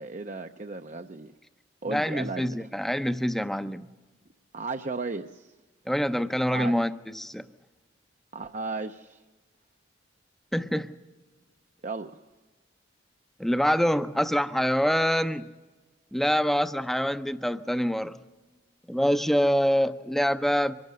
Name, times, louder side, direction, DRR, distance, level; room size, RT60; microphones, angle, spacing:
voice 1, 0.0-1.3 1.8-2.7 4.5-5.5 6.5-6.7 8.3-9.2 11.8-12.2, right 3 dB, 40° right, 0.6 m, -35 dB
voice 2, 1.9-3.9 5.9-7.4 10.5-10.9 13.4-15.5 16.1-18.2 18.9-20.7, equal, ahead, 0.6 m, -25 dB
24.5 x 12.0 x 9.4 m
head